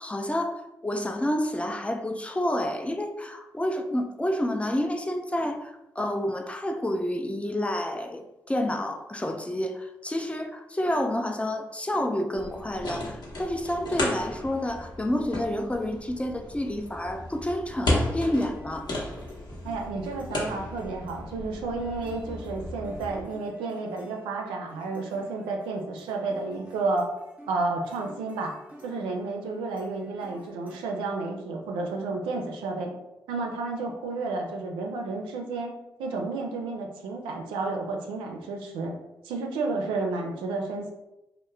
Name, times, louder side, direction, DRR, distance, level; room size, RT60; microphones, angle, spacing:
voice 1, 0.0-18.9, left 1 dB, 15° left, 5 dB, 0.4 m, -29 dB
sound 1, 12.3-23.2, left 1 dB, 60° left, 0.8 m, -34 dB
sound 2, 18.5-31.7, right 1 dB, 20° right, 0.7 m, -52 dB
voice 2, 19.6-27.1 27.5-28.5 28.8-32.9 33.3-35.7 36.0-39.0 39.2-40.9, right 3 dB, 85° right, 2 dB, 0.4 m, -31 dB
2.2 x 2.0 x 3.1 m, 0.94 s
hypercardioid pair, 40°, 8 cm